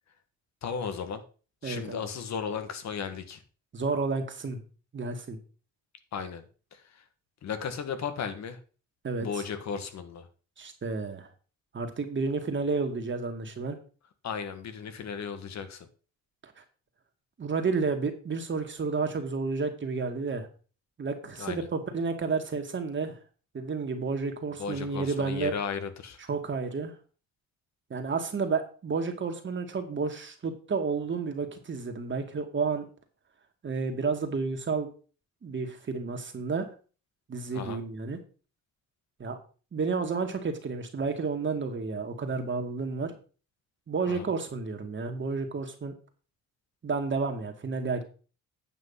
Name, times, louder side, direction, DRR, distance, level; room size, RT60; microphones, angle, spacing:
voice 1, 0.6-1.2 1.6-3.4 6.1-6.4 6.7-7.0 7.4-8.6 9.2-10.3 14.2-15.9 21.4-21.7 24.6-26.2 37.5-37.8 44.1-44.3, left 6 dB, 65° left, 9 dB, 1.6 m, -35 dB
voice 2, 1.6-2.0 3.7-4.6 4.9-5.4 9.0-9.3 10.6-11.3 11.7-13.8 17.4-20.5 21.0-23.2 23.5-25.5 26.3-26.9 27.9-32.8 33.6-34.9 35.4-36.7 37.3-38.2 39.2-39.4 39.7-43.1 43.9-45.9 46.8-48.0, right 4 dB, 40° right, 5 dB, 2.2 m, -31 dB
9.3 x 5.7 x 5.7 m, 0.37 s
cardioid pair, 90°, 30 cm